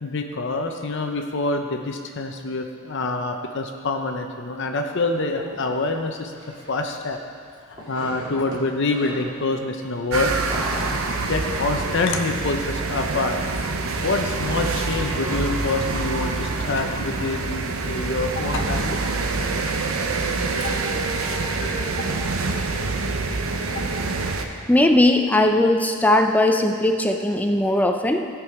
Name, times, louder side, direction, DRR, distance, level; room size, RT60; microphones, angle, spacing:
voice 1, 0.0-6.3 6.7-7.2 7.7-10.3 11.3-13.8 14.0-19.0 23.3-23.4, left 3 dB, 55° left, 4 dB, 0.7 m, -26 dB
sound 1, 5.3-7.1 7.4-9.5 9.8-16.9, equal, 25° right, 2.3 m, -38 dB
sound 2, 10.1-24.4, right 3 dB, 70° right, 0.8 m, -26 dB
sound 3, 18.3-24.5, left 1 dB, 30° left, 1.9 m, -37 dB
voice 2, 24.7-28.3, left 1 dB, 5° left, 5 dB, 0.5 m, -19 dB
16.0 x 6.1 x 4.8 m, 2.1 s
head